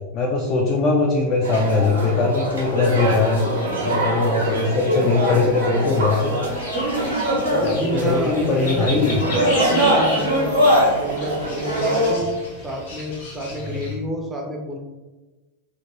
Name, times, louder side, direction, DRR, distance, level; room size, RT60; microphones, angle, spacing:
voice 1, 0.1-3.4 3.8-6.4 7.6-9.3 13.6-13.9, left 4 dB, 35° left, -1 dB, 0.4 m, -21 dB
sound 1, 1.4-12.1, equal, 75° right, 0.9 m, -22 dB
sound 2, 6.4-13.9, left 1 dB, 60° left, 1.1 m, -34 dB
voice 2, 7.5-12.3 12.6-14.8, right 1 dB, 15° right, 0 dB, 0.6 m, -28 dB
2.8 x 2.5 x 2.7 m, 1.2 s
figure-of-eight pair, 90°, 0 cm